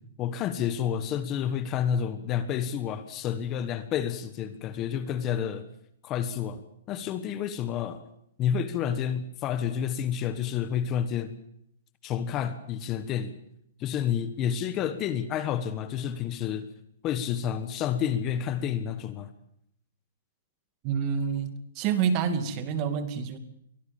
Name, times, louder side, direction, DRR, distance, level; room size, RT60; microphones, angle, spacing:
voice 1, 0.2-5.7 6.0-6.6 6.9-8.0 8.4-11.4 12.0-13.3 13.8-16.7 17.0-19.3, left 9 dB, 25° left, 12 dB, 1.3 m, -29 dB
voice 2, 20.8-23.4, right 7 dB, 30° right, 10 dB, 2.4 m, -28 dB
24.0 x 17.5 x 7.2 m, 0.74 s
hypercardioid pair, 165°, 0 cm